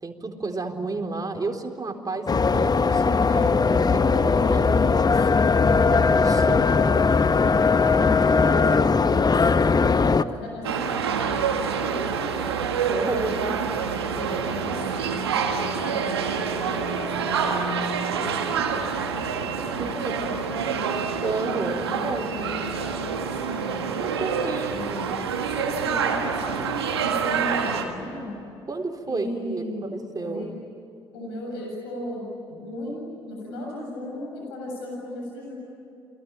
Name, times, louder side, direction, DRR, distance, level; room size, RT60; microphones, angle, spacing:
voice 1, 0.0-5.3 5.9-6.6 12.9-13.4 19.8-20.3 21.2-22.2 24.0-24.9 28.7-30.5, right 3 dB, 30° right, 4 dB, 4.0 m, -31 dB
sound 1, 2.3-10.2, left 4 dB, 30° left, 1.0 m, -19 dB
voice 2, 6.2-12.6 13.2-13.6 14.1-21.0 21.6-24.0 24.6-28.3 29.1-30.5 31.1-35.5, left 1 dB, 85° left, -1 dB, 7.2 m, -36 dB
sound 2, 10.6-27.8, right 6 dB, 90° right, 1.9 m, -27 dB
29.5 x 22.0 x 9.1 m, 2.8 s
hypercardioid pair, 45°, 13 cm